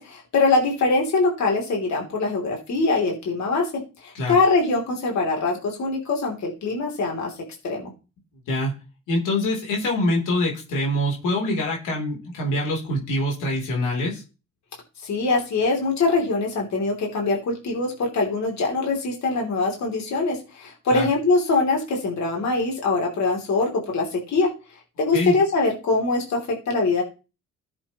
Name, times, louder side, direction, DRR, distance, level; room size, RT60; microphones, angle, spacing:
voice 1, 0.0-3.7 4.0-7.3 7.6-7.9 15.0-24.5 25.0-27.0, left 3 dB, 65° left, 0 dB, 3.2 m, -23 dB
voice 2, 9.1-14.2 20.9-21.1 25.1-25.3, left 1 dB, 90° left, -1 dB, 3.5 m, -24 dB
14.0 x 7.6 x 3.1 m, 0.31 s
cardioid pair, 90°, 30 cm